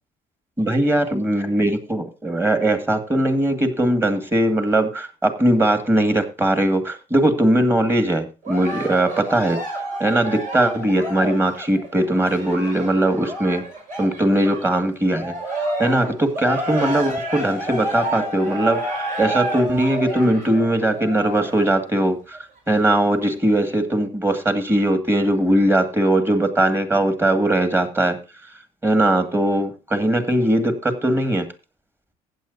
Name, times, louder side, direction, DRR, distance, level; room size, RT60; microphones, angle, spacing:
voice 1, 0.6-9.6 10.0-13.6 14.0-15.3 15.8-28.2 28.8-31.4, right 1 dB, 15° right, 8 dB, 2.0 m, -20 dB
Cheering, 8.4-14.8 15.1-21.7 22.3-22.4, right 1 dB, 55° right, 5.3 m, -29 dB
15.0 x 9.1 x 2.7 m, 0.30 s
cardioid pair, 110°, 17 cm